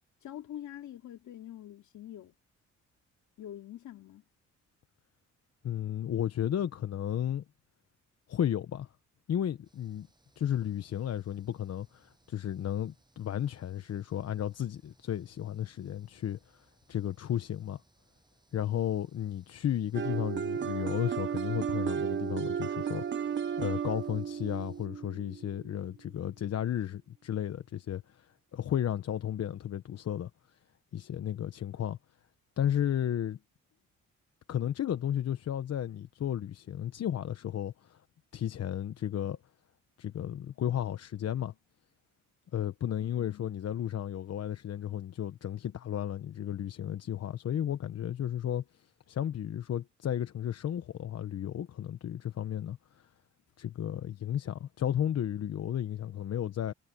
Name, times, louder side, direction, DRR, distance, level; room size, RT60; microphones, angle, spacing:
voice 1, 0.2-2.3 3.4-4.2 43.0-43.5, left 11 dB, 70° left, 2.7 m, -45 dB
voice 2, 5.6-7.4 8.3-8.9 9.3-10.1 10.4-17.8 18.5-30.6 30.9-32.0 32.6-33.4 34.5-38.0 38.3-39.4 40.0-41.5 42.5-53.1 53.6-56.7, left 10 dB, 55° left, 1.1 m, -33 dB
sound 1, 9.6-24.9, right 2 dB, 15° right, 7.8 m, -69 dB
sound 2, 19.9-25.8, right 8 dB, 40° right, 0.8 m, -34 dB
cardioid pair, 90°, 30 cm